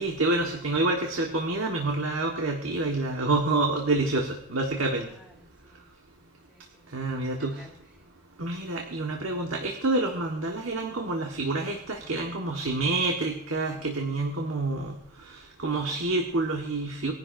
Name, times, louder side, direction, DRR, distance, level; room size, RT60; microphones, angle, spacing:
voice 1, 0.0-5.1 6.9-7.7 8.4-17.1, right 2 dB, 85° right, 1 dB, 1.4 m, -28 dB
voice 2, 5.1-5.8 6.5-8.1, left 1 dB, 5° right, 0 dB, 2.5 m, -56 dB
20.5 x 11.0 x 2.6 m, 0.72 s
head